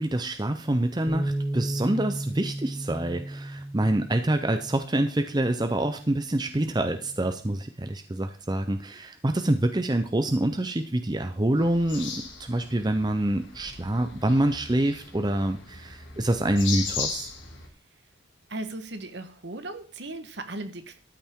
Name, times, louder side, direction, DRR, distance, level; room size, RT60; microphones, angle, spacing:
voice 1, 0.0-17.3, right 1 dB, 20° right, 7 dB, 0.6 m, -26 dB
Bass guitar, 1.1-7.3, right 1 dB, 5° right, 2.1 m, -35 dB
sound 1, 11.6-17.7, left 5 dB, 80° left, 2.5 m, -37 dB
voice 2, 18.5-21.0, right 2 dB, 60° right, 8 dB, 1.3 m, -37 dB
13.0 x 8.6 x 3.7 m, 0.40 s
head